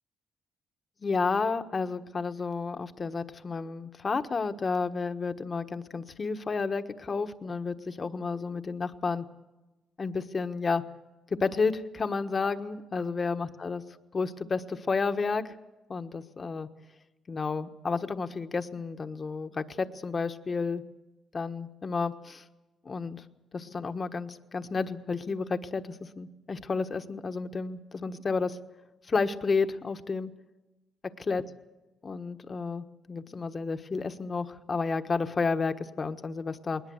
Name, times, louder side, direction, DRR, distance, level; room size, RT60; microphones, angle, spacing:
voice 1, 1.0-9.2 10.0-10.8 11.4-13.8 14.1-15.5 15.9-16.7 17.3-20.8 21.3-22.4 22.8-23.2 23.5-28.6 29.1-30.3 31.3-31.4 32.0-36.8, left 4 dB, 35° left, 9 dB, 1.3 m, -31 dB
21.0 x 19.5 x 8.0 m, 1.1 s
cardioid pair, 90°, 0 cm